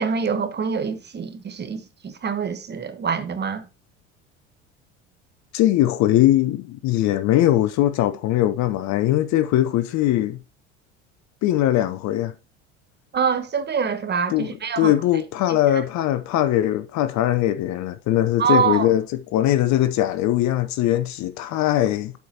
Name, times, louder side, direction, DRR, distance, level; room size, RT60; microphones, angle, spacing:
voice 1, 0.0-3.6 13.1-14.9 18.4-18.9, right 6 dB, 30° right, 1.3 m, -25 dB
voice 2, 5.5-10.4 11.4-12.3 14.3-14.5 14.8-22.1, left 13 dB, 50° left, 0.8 m, -21 dB
12.0 x 4.8 x 2.9 m
hypercardioid pair, 75°, 36 cm